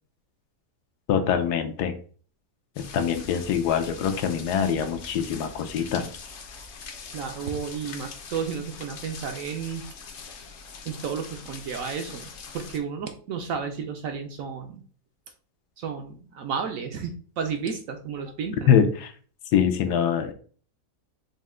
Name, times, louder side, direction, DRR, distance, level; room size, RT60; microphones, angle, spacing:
voice 1, 1.1-1.9 2.8-6.1 18.7-19.1 19.5-20.3, left 8 dB, 80° left, 7 dB, 1.2 m, -24 dB
sound 1, 2.8-12.8, left 5 dB, 60° left, 0.7 m, -42 dB
voice 2, 7.1-9.9 10.9-14.8 15.8-18.8, right 6 dB, 70° right, 5 dB, 0.8 m, -32 dB
5.3 x 2.1 x 3.6 m, 0.43 s
omnidirectional pair, 1.8 m